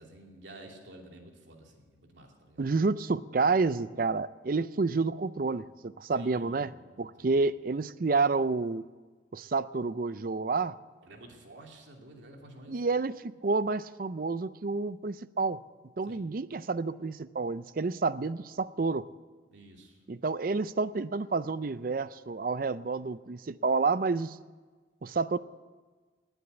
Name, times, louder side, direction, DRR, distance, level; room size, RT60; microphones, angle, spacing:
voice 1, 0.0-2.7 6.1-6.8 7.2-7.4 11.0-12.8 16.0-16.3 19.5-20.0, right 1 dB, 75° right, 1 dB, 2.7 m, -51 dB
voice 2, 2.6-6.7 7.0-8.8 9.3-10.7 12.7-15.6 16.0-19.0 20.1-24.4 25.0-25.4, right 4 dB, 50° right, 16 dB, 0.5 m, -29 dB
19.5 x 8.1 x 8.1 m, 1.4 s
head